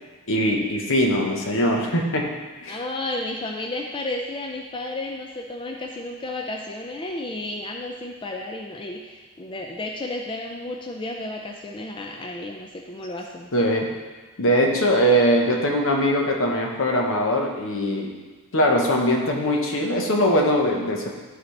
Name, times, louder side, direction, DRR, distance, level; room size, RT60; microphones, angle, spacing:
voice 1, 0.3-2.3 2.6-2.8 13.5-13.9 14.4-18.1 18.5-21.1, equal, 65° left, 0 dB, 1.1 m, -21 dB
voice 2, 2.7-13.5, left 2 dB, 20° left, 1 dB, 0.4 m, -32 dB
12.0 x 4.1 x 3.3 m, 1.3 s
head